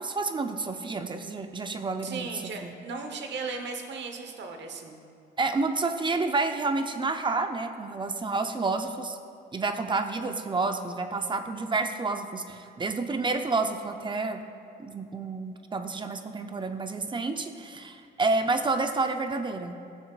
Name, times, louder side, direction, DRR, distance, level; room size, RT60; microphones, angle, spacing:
voice 1, 0.0-2.8 5.4-9.2 9.5-14.4 14.8-19.8, right 3 dB, 25° right, 7 dB, 0.6 m, -29 dB
voice 2, 2.0-5.0, right 4 dB, 65° right, 4 dB, 1.0 m, -36 dB
14.5 x 7.2 x 2.4 m, 2.6 s
cardioid pair, 90°, 20 cm